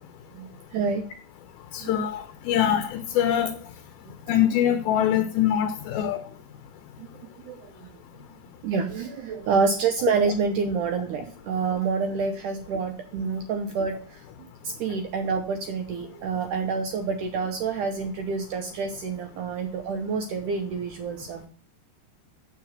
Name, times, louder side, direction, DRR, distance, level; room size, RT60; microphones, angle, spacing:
voice 1, 0.3-1.0 1.8-2.0 7.0-7.9 8.6-14.2 14.6-21.5, right 5 dB, 75° right, 1.9 m, -28 dB
voice 2, 1.7-3.5 4.3-6.2, left 10 dB, 75° left, 2.5 m, -23 dB
7.8 x 6.0 x 7.3 m
omnidirectional pair, 4.7 m